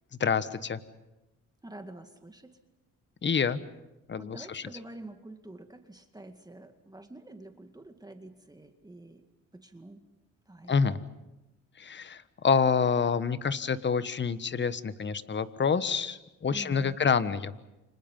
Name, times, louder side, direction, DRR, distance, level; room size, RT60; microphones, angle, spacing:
voice 1, 0.2-0.8 3.2-3.6 4.1-4.6 10.7-11.0 11.8-17.6, left 6 dB, 40° left, 13 dB, 1.4 m, -27 dB
voice 2, 1.6-2.6 4.2-9.2 9.5-10.1 10.5-10.9 16.5-17.0, right 2 dB, 15° right, 6 dB, 2.1 m, -47 dB
30.0 x 26.0 x 5.6 m, 0.97 s
cardioid pair, 90°, 30 cm